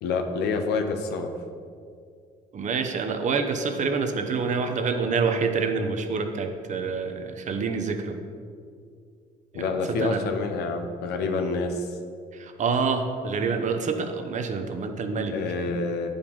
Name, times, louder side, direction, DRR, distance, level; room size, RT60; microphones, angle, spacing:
voice 1, 0.0-1.3 9.5-11.9 15.3-16.1, left 4 dB, 80° left, 6 dB, 1.0 m, -27 dB
voice 2, 2.5-8.2 9.5-10.2 12.3-15.3, right 5 dB, 45° right, 6 dB, 0.9 m, -27 dB
10.0 x 5.3 x 5.4 m, 2.2 s
cardioid pair, 110°, 17 cm